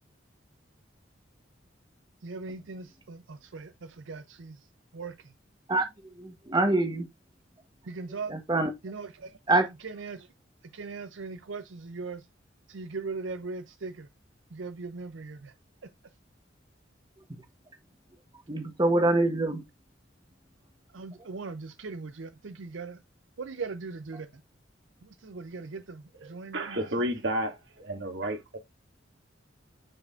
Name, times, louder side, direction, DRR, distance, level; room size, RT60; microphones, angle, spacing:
voice 1, 2.2-4.7 4.9-5.3 7.9-8.4 8.8-10.3 10.7-12.3 12.7-14.1 14.5-15.5 15.8-15.9 20.9-23.0 23.4-24.3 25.0-27.1, right 4 dB, 85° right, 0.6 m, -39 dB
voice 2, 5.7-7.1 8.3-8.7 9.5-9.7 18.5-19.6, right 2 dB, 25° right, 1.1 m, -25 dB
voice 3, 26.2-28.6, right 1 dB, 65° right, 2.3 m, -32 dB
9.7 x 4.9 x 2.5 m
head